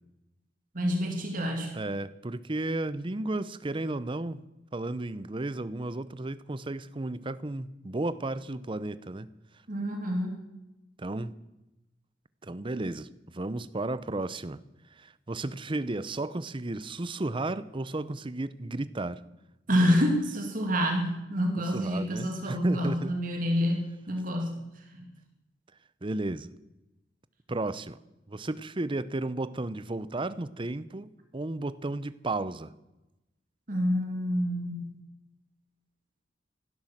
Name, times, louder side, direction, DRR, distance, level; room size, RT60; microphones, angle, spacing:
voice 1, 0.7-1.8 9.7-10.4 19.7-24.6 24.9-25.0 33.7-35.0, equal, 50° right, 2.4 m, -28 dB
voice 2, 1.7-4.4 4.7-9.3 11.0-11.3 12.4-14.6 15.0-19.2 21.6-23.2 26.0-26.5 27.5-28.0 28.3-32.7, right 2 dB, 30° right, 0.7 m, -33 dB
15.5 x 12.0 x 7.4 m
head